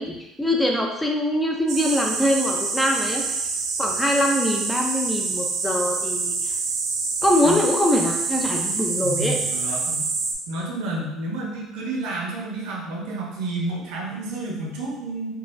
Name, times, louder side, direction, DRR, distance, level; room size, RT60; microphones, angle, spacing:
voice 1, 0.0-3.2 3.8-6.5 7.2-9.4, left 1 dB, 10° left, 0 dB, 0.4 m, -23 dB
sound 1, 1.7-10.3, right 4 dB, 55° right, 0.4 m, -26 dB
voice 2, 9.0-10.1 10.5-15.3, right 2 dB, 85° right, -2 dB, 0.8 m, -30 dB
3.9 x 2.3 x 2.5 m, 0.93 s
cardioid pair, 140°, 0 cm